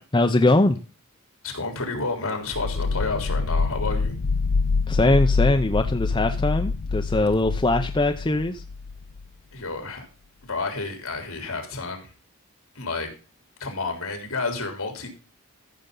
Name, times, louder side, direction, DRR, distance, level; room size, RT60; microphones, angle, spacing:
voice 1, 0.1-0.8 4.9-8.6, left 2 dB, 20° left, 6 dB, 0.6 m, -21 dB
voice 2, 1.4-4.2 9.5-10.1 10.4-12.1 12.8-13.1 13.6-15.1, left 3 dB, 65° left, 4 dB, 3.5 m, -30 dB
sound 1, 2.5-9.2, left 4 dB, 90° left, 0.6 m, -26 dB
14.5 x 6.8 x 3.8 m, 0.33 s
head